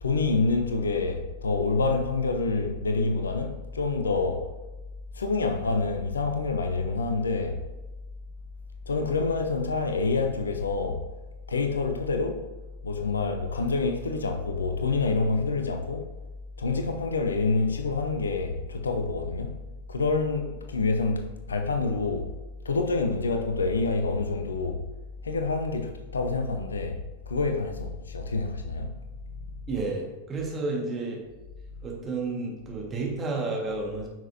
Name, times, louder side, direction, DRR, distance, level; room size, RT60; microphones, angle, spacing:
voice 1, 0.0-4.5 5.1-7.6 8.9-11.0 11.5-12.4 12.8-16.1 16.6-19.6 19.9-22.3 22.6-24.8 25.2-27.0 27.3-28.9, left 3 dB, 70° left, 0.7 m, -27 dB
voice 2, 29.7-31.2 31.8-34.1, right 3 dB, 25° right, 1.7 m, -31 dB
8.9 x 6.1 x 2.8 m
figure-of-eight pair, 90°, 0 cm